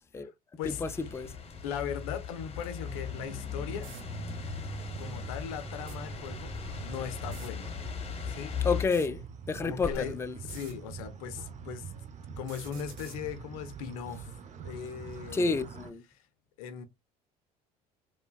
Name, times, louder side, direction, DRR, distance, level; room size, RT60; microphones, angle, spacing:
sound 1, 0.6-8.9, left 7 dB, 35° left, 0.8 m, -39 dB
voice 1, 0.6-1.3 8.6-10.3 15.3-16.0, left 4 dB, 15° left, 0.4 m, -30 dB
voice 2, 1.6-3.9 5.0-6.5 6.8-7.7 8.3-8.6 9.6-11.9 12.4-14.3 14.6-15.5 16.1-16.2 16.6-16.9, left 8 dB, 85° left, 0.5 m, -39 dB
sound 2, 2.8-15.9, right 5 dB, 45° right, 0.6 m, -44 dB
sound 3, 3.8-4.0 5.7-6.0 7.2-7.5 8.8-9.1 10.4-10.7 12.4-13.2, right 6 dB, 85° right, 0.9 m, -49 dB
3.2 x 2.1 x 2.2 m
hypercardioid pair, 70°, 18 cm